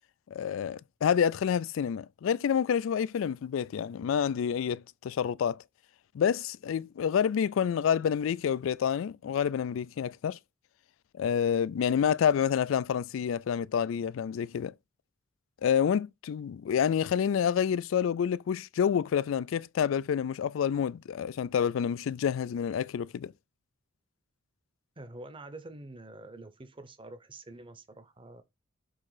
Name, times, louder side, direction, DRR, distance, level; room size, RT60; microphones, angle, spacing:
voice 1, 0.3-5.6 6.1-10.4 11.2-14.7 15.6-23.3, left 8 dB, 75° left, 0.3 m, -28 dB
voice 2, 25.0-28.4, right 2 dB, 25° right, 0.8 m, -46 dB
6.4 x 3.6 x 4.8 m
head